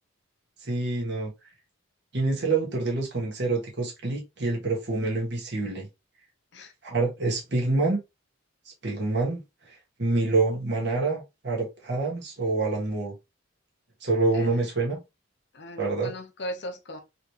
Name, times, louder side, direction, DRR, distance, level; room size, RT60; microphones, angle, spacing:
voice 1, 0.6-1.3 2.1-5.9 6.8-8.0 8.8-9.4 10.0-13.1 14.0-14.9 15.8-16.1, right 3 dB, 55° right, 1.5 m, -26 dB
voice 2, 14.3-14.6 15.5-17.0, equal, 55° left, 0.8 m, -38 dB
4.0 x 3.2 x 2.8 m
head